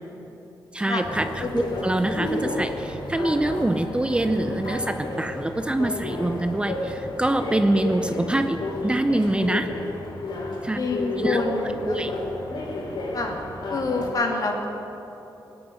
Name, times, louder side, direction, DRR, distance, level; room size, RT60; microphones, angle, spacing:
voice 1, 0.7-9.7 10.6-10.8 11.2-12.1, right 1 dB, 15° right, 8 dB, 0.6 m, -25 dB
sound 1, 1.0-14.1, left 2 dB, 75° left, 3.3 m, -31 dB
voice 2, 10.8-12.0 13.1-13.4 13.7-14.7, left 3 dB, 50° left, 1 dB, 2.4 m, -27 dB
19.5 x 7.0 x 9.4 m, 3.0 s
wide cardioid pair, 115°, 8 cm